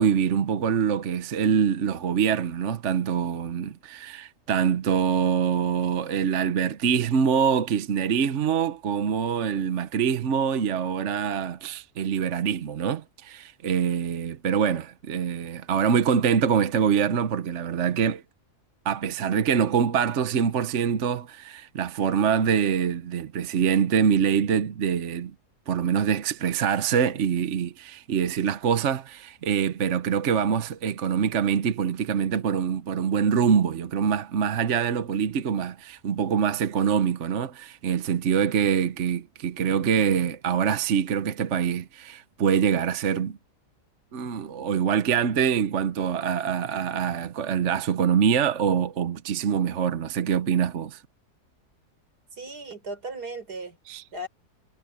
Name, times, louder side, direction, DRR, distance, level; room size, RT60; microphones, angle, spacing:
voice 1, 0.0-18.2 18.8-25.3 25.7-43.4 44.1-51.0 53.9-54.0, right 7 dB, 50° right, 1.1 m, -24 dB
voice 2, 52.4-53.8 54.1-54.3, right 2 dB, 75° right, 4.7 m, -36 dB
omnidirectional pair, 1.7 m